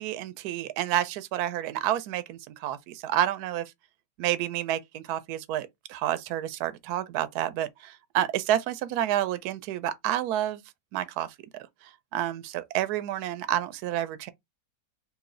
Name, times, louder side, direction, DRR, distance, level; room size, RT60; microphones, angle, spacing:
voice 1, 0.0-3.6 4.2-10.6 10.9-14.3, right 12 dB, 70° right, 1.0 m, -29 dB
3.1 x 2.9 x 3.7 m
omnidirectional pair, 1.8 m